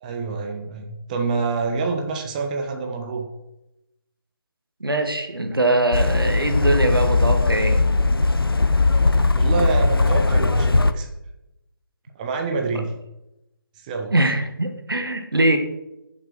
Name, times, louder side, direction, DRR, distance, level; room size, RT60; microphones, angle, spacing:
voice 1, 0.0-3.3 9.4-11.1 12.1-12.9 13.8-14.1, right 4 dB, 20° right, 3 dB, 1.2 m, -27 dB
voice 2, 4.8-7.8 14.1-15.6, right 1 dB, 75° right, 6 dB, 1.7 m, -22 dB
sound 1, 5.9-10.9, left 3 dB, 75° left, 0.8 m, -19 dB
11.5 x 7.1 x 4.8 m, 0.91 s
figure-of-eight pair, 150°, 12 cm